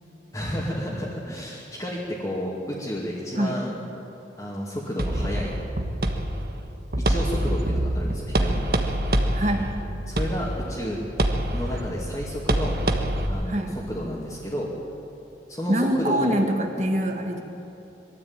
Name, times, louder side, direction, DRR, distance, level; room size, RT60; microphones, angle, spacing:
voice 1, 0.3-3.7 4.4-5.5 7.0-8.7 10.1-11.0 11.5-12.8 13.3-14.7 15.5-16.4, equal, 20° left, -5 dB, 2.5 m, -31 dB
sound 1, 5.0-13.3, right 1 dB, 55° right, 1.5 m, -26 dB
voice 2, 9.3-9.7 13.4-13.7 15.7-17.4, right 1 dB, 40° right, 3 dB, 1.7 m, -24 dB
22.0 x 13.0 x 8.9 m, 2.7 s
head